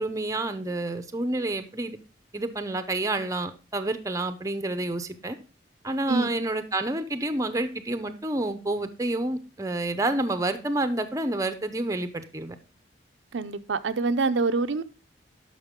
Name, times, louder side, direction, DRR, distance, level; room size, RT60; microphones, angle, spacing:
voice 1, 0.0-2.0 2.3-5.4 5.8-12.6, right 2 dB, 15° right, 0.7 m, -29 dB
voice 2, 13.3-14.8, right 4 dB, 75° right, 0.5 m, -25 dB
11.5 x 5.6 x 3.6 m
head